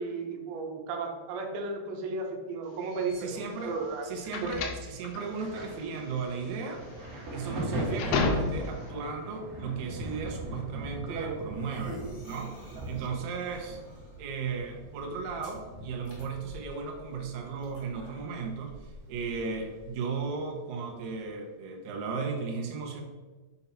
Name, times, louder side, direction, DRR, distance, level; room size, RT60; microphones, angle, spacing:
voice 1, 0.0-4.1 4.4-4.5 11.0-11.4 12.8-13.0, right 4 dB, 90° right, 2 dB, 2.6 m, -35 dB
sound 1, 2.9-8.9, left 4 dB, 80° left, 2.4 m, -32 dB
voice 2, 3.2-3.8 4.0-6.8 7.3-13.8 14.2-23.0, right 5 dB, 70° right, 1 dB, 1.8 m, -36 dB
Thunder, 5.3-18.7 18.9-20.3 21.1-21.3, right 1 dB, 55° right, 1.7 m, -40 dB
sound 2, 11.4-19.9, right 1 dB, 40° left, 0.9 m, -50 dB
6.9 x 2.6 x 5.6 m, 1.3 s
omnidirectional pair, 4.4 m